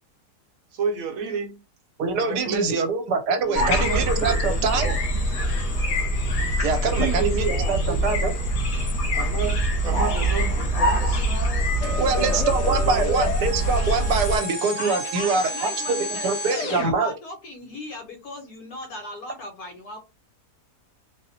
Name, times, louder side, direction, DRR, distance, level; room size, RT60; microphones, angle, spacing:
voice 1, 0.7-1.6 2.2-2.8 3.4-5.0 6.8-7.8 9.1-13.2, right 5 dB, 65° right, 1.0 m, -31 dB
voice 2, 2.0-4.9 6.6-8.3 12.0-16.0 16.2-17.1, right 4 dB, 85° right, 1.2 m, -24 dB
sound 1, 3.5-14.4, equal, 85° left, 1.9 m, -24 dB
sound 2, 11.8-16.9, left 1 dB, 50° left, 1.1 m, -31 dB
voice 3, 14.8-20.0, left 2 dB, 70° left, 1.4 m, -37 dB
4.0 x 2.0 x 2.7 m
omnidirectional pair, 1.8 m